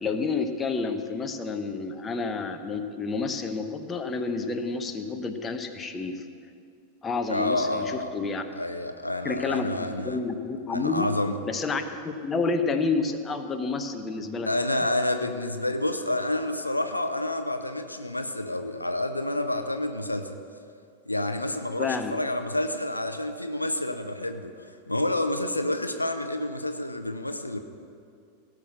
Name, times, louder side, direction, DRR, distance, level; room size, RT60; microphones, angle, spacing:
voice 1, 0.0-6.2 7.0-8.4 9.2-11.1 11.5-14.5 21.8-22.1, left 4 dB, 20° left, 6 dB, 0.9 m, -29 dB
voice 2, 7.3-8.1 8.6-10.2 10.7-11.4 14.4-20.3 21.1-27.6, left 1 dB, 85° left, 7 dB, 0.7 m, -29 dB
17.0 x 6.1 x 6.6 m, 2.3 s
figure-of-eight pair, 90°, 0 cm